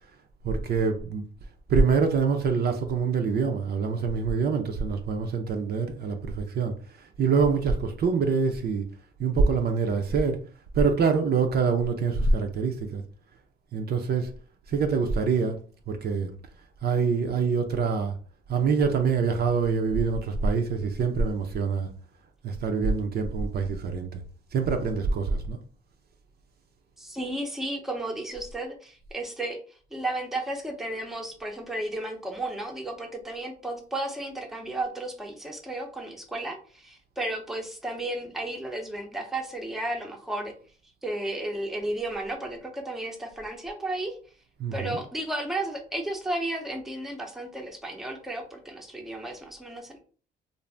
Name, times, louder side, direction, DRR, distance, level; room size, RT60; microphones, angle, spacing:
voice 1, 0.4-1.3 1.7-8.9 9.2-10.4 10.7-13.0 13.7-14.3 14.7-15.6 15.9-16.3 16.8-18.2 18.5-21.9 22.4-24.2 24.5-25.6 44.6-45.0, right 5 dB, 55° right, 0.5 m, -25 dB
voice 2, 27.0-29.6 29.9-40.5 41.0-44.2 44.7-50.0, right 1 dB, ahead, 0.6 m, -33 dB
2.6 x 2.0 x 3.2 m
cardioid pair, 90°, 20 cm